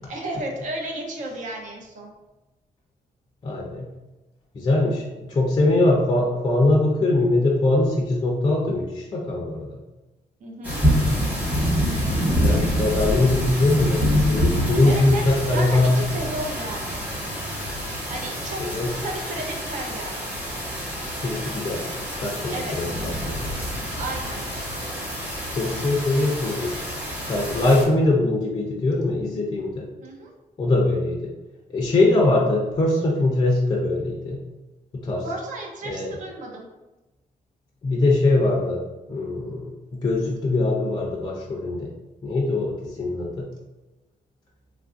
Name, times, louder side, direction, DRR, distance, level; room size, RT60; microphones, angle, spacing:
voice 1, 0.1-2.1 10.4-10.8 14.8-17.0 18.1-20.3 22.5-22.9 24.0-24.4 30.0-30.3 35.2-36.7, right 1 dB, 55° right, 0 dB, 0.7 m, -33 dB
voice 2, 3.4-3.9 4.5-9.7 12.4-16.0 18.6-18.9 21.2-23.5 25.6-26.7 27.3-29.9 30.6-31.3 31.7-34.4 34.9-35.2 35.8-36.1 37.8-38.8 39.1-39.7 39.9-41.9 42.2-43.5, left 2 dB, 30° left, -1 dB, 0.4 m, -22 dB
sound 1, 10.6-27.8, equal, 10° right, 1.1 m, -26 dB
3.2 x 2.5 x 2.4 m, 1.1 s
wide cardioid pair, 150°, 15 cm